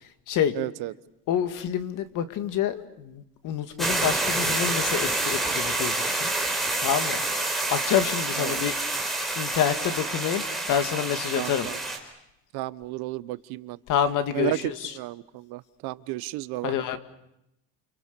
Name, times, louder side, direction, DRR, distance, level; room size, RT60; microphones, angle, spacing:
voice 1, 0.5-0.9 8.4-8.6 11.3-11.8 12.5-13.8 14.3-16.7, right 18 dB, 60° right, 16 dB, 1.1 m, -33 dB
voice 2, 1.3-6.3 6.8-7.2 7.7-9.1 9.4-11.7 13.9-14.9 16.6-17.0, left 9 dB, 45° left, 10 dB, 2.2 m, -27 dB
sound 1, 3.8-12.0, right 2 dB, ahead, 4.2 m, -28 dB
29.5 x 29.0 x 6.9 m, 0.81 s
cardioid pair, 170°, 42 cm